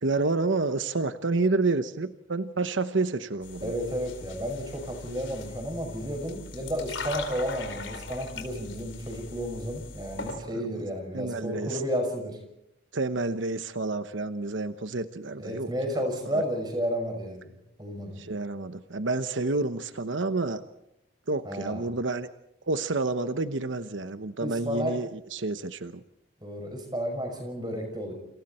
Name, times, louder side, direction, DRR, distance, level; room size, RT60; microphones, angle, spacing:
voice 1, 0.0-3.7 10.5-10.7 11.1-11.8 12.9-15.7 18.2-20.6 21.3-22.3 22.7-26.0, right 3 dB, 85° right, 11 dB, 1.0 m, -29 dB
sound 1, 3.4-10.4, left 4 dB, 80° left, 4.1 m, -40 dB
voice 2, 3.6-12.4 15.4-17.5 17.8-18.2 21.4-21.9 24.4-25.0 26.4-28.1, equal, 20° right, 4 dB, 5.9 m, -32 dB
28.5 x 27.5 x 4.4 m, 0.83 s
head